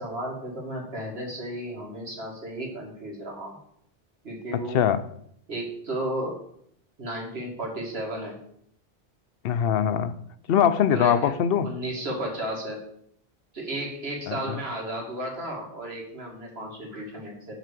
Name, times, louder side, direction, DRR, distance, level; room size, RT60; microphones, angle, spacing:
voice 1, 0.0-3.6 4.2-4.9 5.5-6.4 7.0-8.4 10.9-11.3 11.6-12.8 13.5-17.6, right 1 dB, 80° right, -1 dB, 2.3 m, -33 dB
voice 2, 4.5-5.0 9.4-10.2 10.5-11.7 14.3-14.6, left 8 dB, 70° left, 12 dB, 0.8 m, -22 dB
8.1 x 4.1 x 6.7 m, 0.69 s
omnidirectional pair, 1.0 m